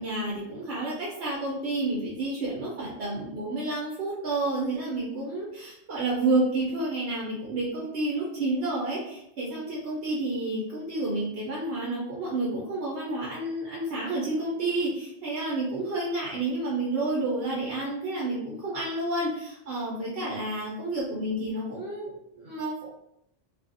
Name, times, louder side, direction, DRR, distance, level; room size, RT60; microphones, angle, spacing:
voice 1, 0.0-22.9, right 2 dB, 60° right, -5 dB, 0.9 m, -30 dB
2.6 x 2.4 x 2.5 m, 0.78 s
omnidirectional pair, 1.2 m